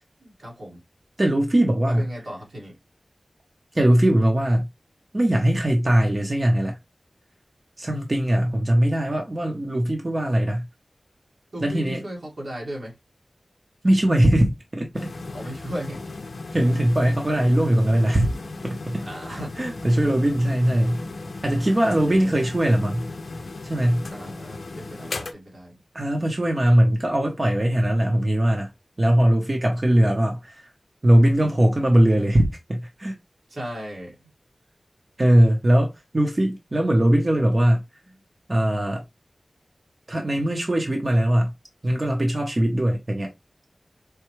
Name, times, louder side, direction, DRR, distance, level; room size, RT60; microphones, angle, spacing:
voice 1, 0.2-0.8 1.8-2.7 11.5-12.9 15.3-16.0 19.0-20.0 20.3-20.4 21.8-22.4 24.1-25.8 33.5-34.3, right 1 dB, 85° right, 1.9 m, -36 dB
voice 2, 1.2-2.1 3.7-4.7 5.1-6.8 7.8-10.6 11.6-12.0 13.8-15.1 16.5-18.3 18.6-19.0 19.6-21.0 21.4-23.0 23.6-24.0 25.9-28.7 29.0-30.7 31.0-33.1 35.2-37.8 38.5-39.0 40.1-41.5 41.8-43.3, right 1 dB, 40° right, 0.8 m, -20 dB
sound 1, 14.9-25.3, left 3 dB, 90° left, 0.4 m, -36 dB
4.6 x 2.2 x 3.0 m
wide cardioid pair, 65°, 0 cm